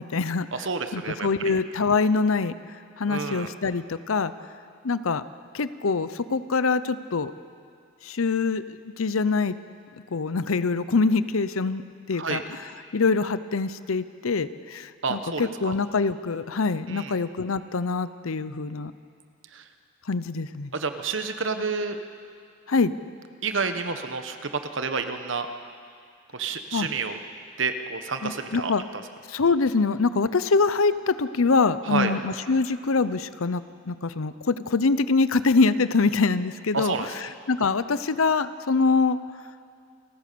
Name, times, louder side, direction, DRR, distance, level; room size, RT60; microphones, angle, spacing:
voice 1, 0.0-0.5 0.9-2.5 3.0-4.3 4.8-5.2 5.5-7.3 8.0-9.6 10.1-11.8 12.1-18.9 20.1-20.7 22.7-22.9 26.7-26.9 28.2-28.8 29.3-39.2, left 4 dB, 80° left, 14 dB, 0.7 m, -24 dB
voice 2, 0.5-1.6 3.1-3.5 12.2-12.4 15.0-15.7 16.9-17.2 19.5-19.6 20.7-22.0 23.4-25.5 26.3-27.2 27.6-29.0 31.8-32.1 36.7-37.1, right 4 dB, 65° right, 8 dB, 1.2 m, -29 dB
29.0 x 14.5 x 6.9 m, 2.3 s
head